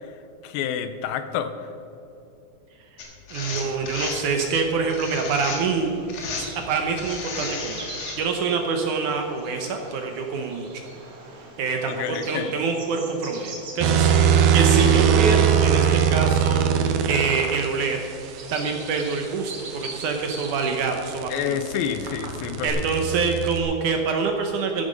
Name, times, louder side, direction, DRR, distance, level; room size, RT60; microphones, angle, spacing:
voice 1, 0.4-1.5 11.9-12.5 21.3-22.8, left 8 dB, 85° left, 10 dB, 2.5 m, -28 dB
sound 1, 3.0-4.2 4.9-5.8 6.1-6.5 7.0-8.2, left 4 dB, 50° left, 2.4 m, -33 dB
voice 2, 3.3-5.9 6.7-7.9 8.2-10.8 11.6-18.0 18.5-21.6 22.6-24.8, right 5 dB, 70° right, 3 dB, 2.1 m, -26 dB
Bird vocalization bird call bird song, 5.7-22.7, right 3 dB, 45° right, 2.1 m, -43 dB
sound 2, 13.8-17.7 20.0-23.6, right 8 dB, 85° right, 2.7 m, -20 dB
14.5 x 10.5 x 5.2 m, 2.8 s
omnidirectional pair, 4.4 m